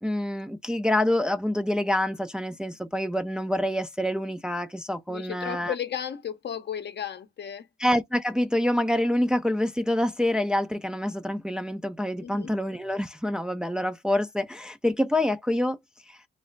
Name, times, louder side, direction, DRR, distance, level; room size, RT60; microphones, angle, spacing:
voice 1, 0.0-5.7 7.8-15.8 16.1-16.2, left 1 dB, 5° right, 0.4 m, -26 dB
voice 2, 5.1-7.7 12.2-12.5, left 9 dB, 55° left, 0.7 m, -34 dB
3.2 x 2.0 x 3.8 m
cardioid pair, 65°, 21 cm